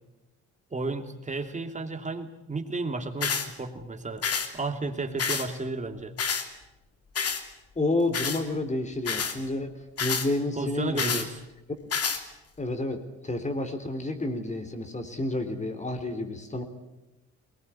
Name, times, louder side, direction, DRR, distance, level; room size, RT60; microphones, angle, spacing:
voice 1, 0.7-4.3 4.5-6.1 10.6-11.4, right 3 dB, 25° right, 5 dB, 2.8 m, -33 dB
sound 1, 3.2-3.5 4.2-4.5 5.2-5.5 6.2-6.4 7.2-7.4 8.1-8.4 9.0-9.4 10.0-10.3 11.0-11.3 11.9-12.2, left 6 dB, 50° left, 2.9 m, -28 dB
voice 2, 7.8-9.7 10.0-11.2 12.6-16.6, left 2 dB, 25° left, 8 dB, 3.6 m, -30 dB
21.5 x 20.0 x 9.9 m, 0.99 s
cardioid pair, 90°, 30 cm